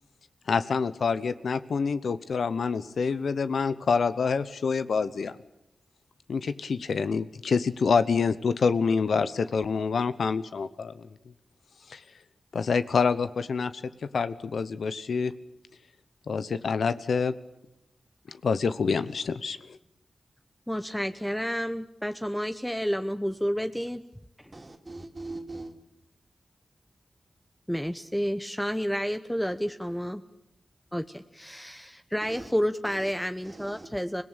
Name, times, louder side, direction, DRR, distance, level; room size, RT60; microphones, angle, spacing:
voice 1, 0.5-5.3 6.3-11.1 11.9-12.0 12.5-13.7 14.1-15.3 16.3-17.3 18.3-19.6, left 5 dB, 80° left, 1.0 m, -26 dB
voice 2, 20.7-24.0 24.4-24.5 27.7-30.2 30.9-34.2, equal, 5° left, 1.0 m, -30 dB
voice 3, 24.5-25.7 32.3-32.5 32.9-33.1 33.4-33.9, right 2 dB, 35° right, 2.9 m, -41 dB
25.0 x 17.5 x 8.9 m
cardioid pair, 50°, 0 cm